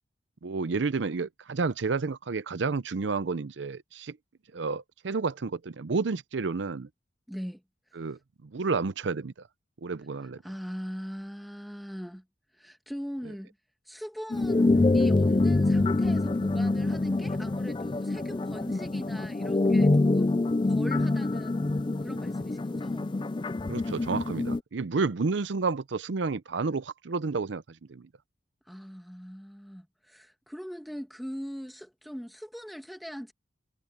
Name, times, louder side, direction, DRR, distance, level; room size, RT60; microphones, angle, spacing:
voice 1, 0.4-4.2 4.5-6.9 8.0-9.3 9.8-10.4 23.7-28.1, right 4 dB, 85° right, 0.6 m, -30 dB
voice 2, 7.3-7.6 10.4-12.2 12.5-13.5 13.9-23.1 28.7-33.3, equal, ahead, 1.8 m, -40 dB
sound 1, 14.3-24.6, left 2 dB, 25° left, 0.4 m, -25 dB
head